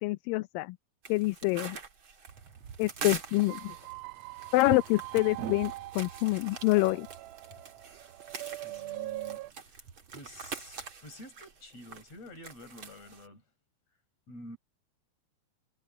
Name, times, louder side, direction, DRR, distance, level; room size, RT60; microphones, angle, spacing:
voice 1, 0.0-0.8 1.1-1.8 2.8-3.7 4.5-7.1, left 22 dB, 80° left, 2.2 m, -27 dB
sound 1, 1.0-13.3, right 6 dB, 40° right, 2.7 m, -45 dB
sound 2, 2.3-10.9, right 7 dB, 55° right, 2.0 m, -47 dB
sound 3, 3.3-9.5, right 18 dB, 85° right, 2.4 m, -42 dB
voice 2, 8.6-9.8 10.1-13.4 14.3-14.6, left 1 dB, 45° left, 8.0 m, -49 dB
omnidirectional pair, 4.2 m